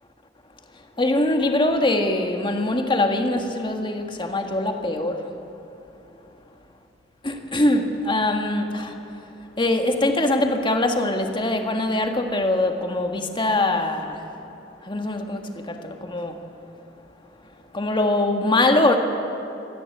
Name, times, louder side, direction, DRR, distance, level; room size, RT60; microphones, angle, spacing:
voice 1, 1.0-5.2 7.2-8.9 9.6-14.2 14.9-16.4 17.7-19.0, left 2 dB, 25° left, 1.7 m, -22 dB
24.0 x 15.0 x 8.7 m
head